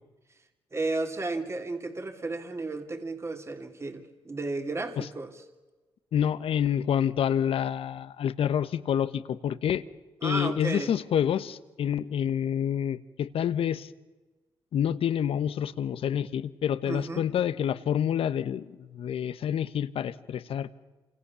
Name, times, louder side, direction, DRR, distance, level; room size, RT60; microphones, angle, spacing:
voice 1, 0.7-5.4 10.2-10.9 16.9-17.3, right 3 dB, 30° right, 5 dB, 2.8 m, -33 dB
voice 2, 6.1-9.8 10.2-13.9 14.7-20.7, left 9 dB, 75° left, 14 dB, 1.2 m, -28 dB
28.5 x 26.5 x 7.1 m, 1.2 s
cardioid pair, 80°, 10 cm